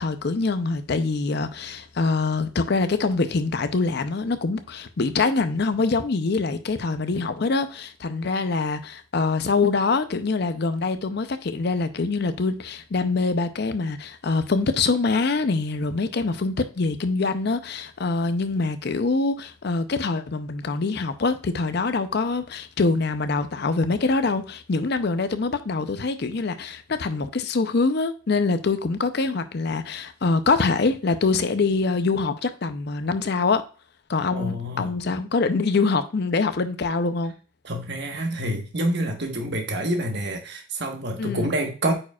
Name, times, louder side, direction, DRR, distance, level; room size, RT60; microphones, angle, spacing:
voice 1, 0.0-33.6 34.1-37.3 41.2-41.5, left 3 dB, 50° left, 0.5 m, -24 dB
voice 2, 34.3-34.9 37.6-41.9, right 1 dB, 55° right, 1.2 m, -27 dB
8.6 x 4.9 x 2.3 m
head